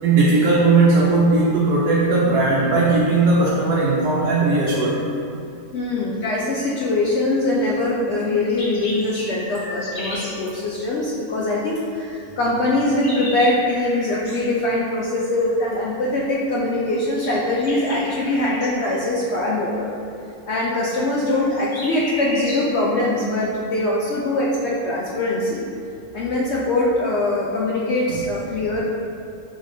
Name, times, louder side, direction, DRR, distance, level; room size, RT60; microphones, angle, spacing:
voice 1, 0.0-5.0, right 3 dB, 85° right, -7 dB, 1.2 m, -17 dB
voice 2, 5.7-19.9 20.5-25.6 26.1-28.8, left 2 dB, 70° left, -4 dB, 0.6 m, -22 dB
sound 1, 8.3-10.4 12.4-14.4 17.1-18.7 21.1-22.7, left 1 dB, 35° left, 1.2 m, -33 dB
5.1 x 4.0 x 2.5 m, 2.6 s
omnidirectional pair, 1.6 m